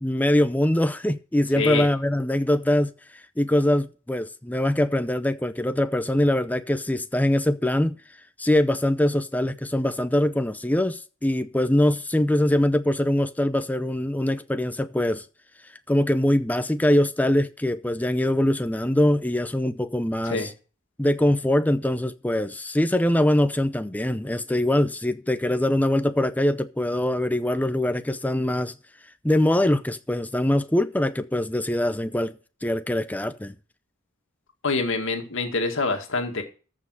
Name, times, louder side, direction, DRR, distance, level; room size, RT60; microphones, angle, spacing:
voice 1, 0.0-2.9 3.4-8.0 8.4-15.2 15.9-20.5 21.0-28.7 29.2-32.3 32.6-33.5, left 1 dB, 10° left, 0.6 m, -23 dB
voice 2, 1.6-1.9 20.2-20.5 34.6-36.4, left 3 dB, 65° left, 2.0 m, -26 dB
14.0 x 5.6 x 6.3 m
head